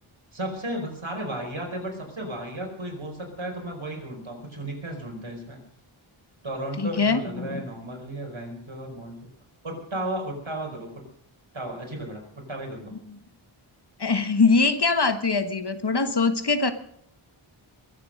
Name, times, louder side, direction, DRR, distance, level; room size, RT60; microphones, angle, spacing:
voice 1, 0.3-5.6 6.4-9.3 9.6-11.0 11.5-12.9, right 1 dB, 70° right, 2 dB, 5.0 m, -34 dB
voice 2, 6.8-7.6 14.0-16.7, left 4 dB, 50° left, 10 dB, 1.3 m, -22 dB
22.5 x 8.3 x 6.4 m, 0.66 s
wide cardioid pair, 50°, 50 cm